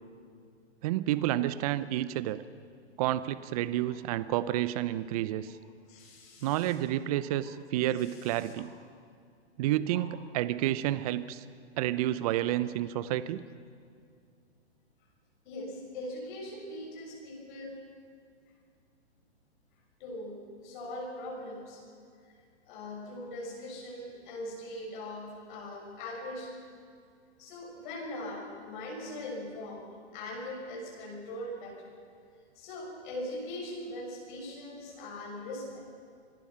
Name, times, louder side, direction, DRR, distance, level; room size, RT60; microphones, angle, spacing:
voice 1, 0.8-2.4 3.0-5.6 6.4-8.7 9.6-11.4 11.8-13.4, right 13 dB, 35° right, 15 dB, 0.6 m, -30 dB
voice 2, 5.9-6.8 8.0-8.5 9.9-10.1 15.4-17.8 20.0-21.8 22.7-26.6 27.4-29.8 30.1-31.8 32.5-35.8, left 1 dB, 45° left, -1 dB, 6.5 m, -41 dB
26.0 x 17.5 x 5.8 m, 2.3 s
hypercardioid pair, 135°, 34 cm